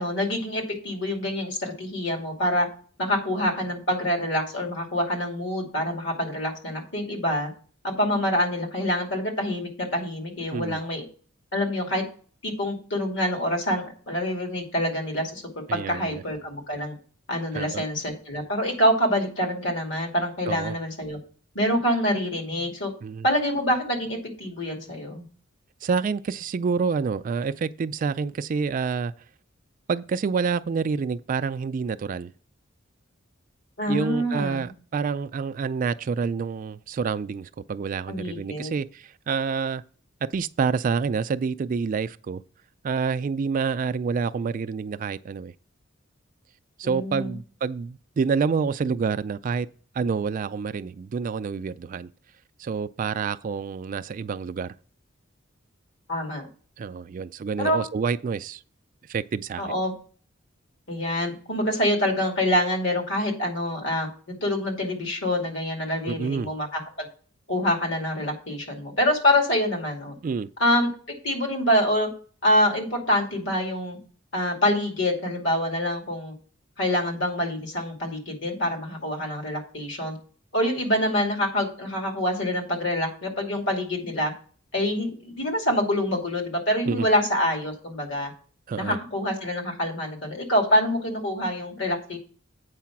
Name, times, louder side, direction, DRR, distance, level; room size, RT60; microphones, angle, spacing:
voice 1, 0.0-2.7 3.0-7.5 7.8-11.0 11.5-12.0 12.4-15.4 15.7-16.9 17.3-21.2 21.5-22.9 23.2-25.2 33.8-34.7 38.1-38.8 46.8-47.4 56.1-56.5 57.6-57.8 59.6-59.9 60.9-67.1 67.5-70.1 70.6-70.9 71.2-72.1 72.4-74.0 74.3-76.3 76.8-80.2 80.5-84.3 84.7-88.3 88.8-92.2, left 1 dB, 65° left, 2.5 m, -26 dB
voice 2, 15.7-16.2 17.5-17.8 20.4-20.8 23.0-23.3 25.8-29.1 29.9-32.3 33.9-39.8 40.2-42.4 42.8-45.5 46.8-49.7 49.9-52.1 52.6-54.7 56.8-58.6 59.1-59.7 66.1-66.5 70.2-70.5 86.8-87.1 88.7-89.0, right 5 dB, 40° right, 0.3 m, -28 dB
8.3 x 4.8 x 5.9 m
head